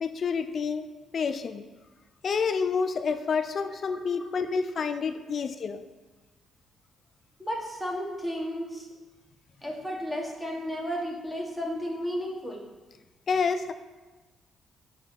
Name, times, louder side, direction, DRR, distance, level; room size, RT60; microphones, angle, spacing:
voice 1, 0.0-0.9 1.1-1.6 2.2-5.8 13.3-13.7, left 5 dB, 50° left, 10 dB, 0.4 m, -28 dB
voice 2, 3.9-4.6 7.4-8.9 9.6-12.6, equal, 5° right, -2 dB, 1.4 m, -33 dB
5.1 x 4.3 x 5.7 m, 1.2 s
cardioid pair, 90°, 0 cm